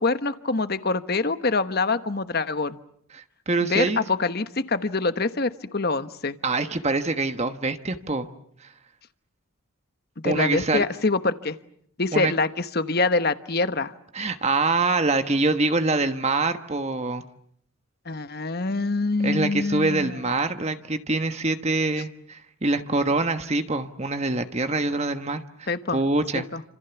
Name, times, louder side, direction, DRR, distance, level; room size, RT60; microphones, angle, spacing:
voice 1, 0.0-2.8 3.6-6.4 10.2-11.6 12.0-13.9 18.1-20.1 25.7-26.0 26.3-26.6, left 3 dB, 45° left, 11 dB, 1.2 m, -25 dB
voice 2, 3.1-4.0 6.4-8.3 10.2-10.8 12.1-12.3 14.1-17.2 19.2-26.5, right 3 dB, 30° right, 9 dB, 1.2 m, -25 dB
29.5 x 26.5 x 7.1 m, 0.68 s
head